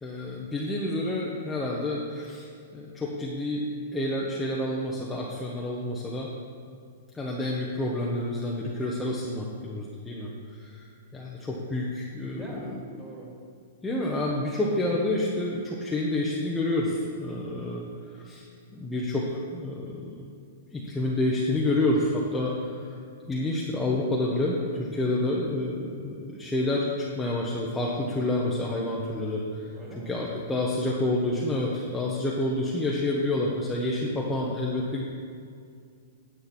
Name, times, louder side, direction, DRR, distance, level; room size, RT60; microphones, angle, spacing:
voice 1, 0.0-3.6 3.9-6.3 7.1-10.8 11.1-12.8 13.8-17.8 18.1-18.4 18.7-20.3 20.7-22.9 23.3-29.7 30.1-35.0, left 1 dB, 10° left, -4 dB, 1.0 m, -29 dB
voice 2, 12.4-13.3 14.6-14.8 17.9-18.1 22.6-22.8 25.2-25.3 29.7-30.2, right 1 dB, 15° right, -3 dB, 2.5 m, -45 dB
9.8 x 7.8 x 4.3 m, 2.3 s
hypercardioid pair, 135°, 0 cm